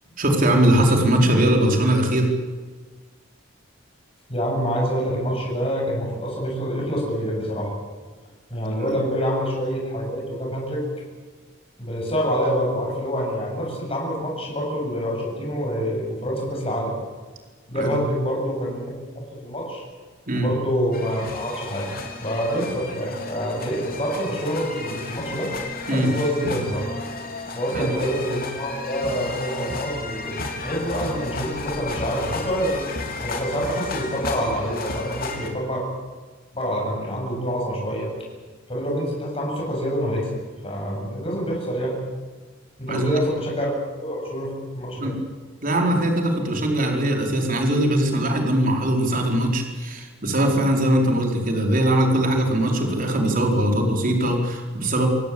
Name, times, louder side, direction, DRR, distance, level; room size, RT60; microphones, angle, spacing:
voice 1, 0.2-2.3 8.8-8.9 17.7-17.9 20.3-20.5 25.9-26.1 27.7-27.9 42.9-43.2 45.0-45.1 45.6-55.1, right 1 dB, 45° right, 2 dB, 4.6 m, -21 dB
voice 2, 4.3-7.7 8.5-10.8 11.8-17.0 17.7-18.9 19.4-19.8 20.4-21.9 22.2-25.5 25.9-26.8 27.5-32.8 33.2-35.8 36.5-38.1 38.7-40.3 40.6-42.0 42.8-43.7 44.0-45.1, equal, 30° left, -2 dB, 7.9 m, -26 dB
sound 1, 20.9-35.5, left 3 dB, 50° left, 3.7 m, -33 dB
27.5 x 17.5 x 8.7 m, 1.4 s
head